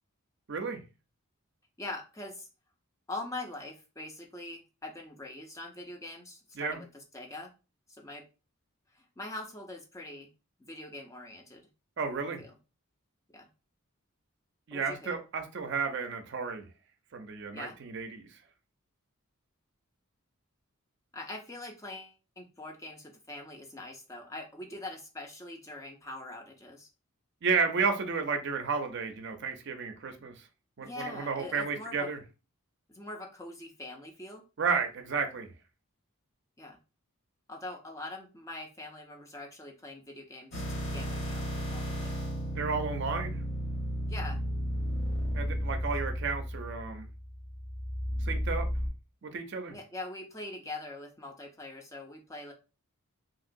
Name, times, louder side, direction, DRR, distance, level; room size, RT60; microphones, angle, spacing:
voice 1, 0.5-0.8 6.6-6.8 12.0-12.4 14.7-16.7 17.1-18.3 27.4-30.3 30.8-32.2 34.6-35.5 42.6-43.4 45.3-47.1 48.3-48.7 49.2-49.7, right 5 dB, 55° right, 0.5 m, -32 dB
voice 2, 1.8-2.5 3.1-6.9 7.1-7.5 7.9-8.2 8.9-10.3 10.7-11.7 12.4-12.5 13.3-13.5 14.7-15.1 17.5-17.8 21.1-26.9 30.8-32.1 32.9-34.4 36.6-36.8 37.5-42.2 44.1-44.4 49.7-52.5, left 2 dB, 15° left, 0.4 m, -43 dB
sound 1, 40.5-48.9, equal, 50° left, 1.0 m, -33 dB
2.9 x 2.8 x 2.5 m
head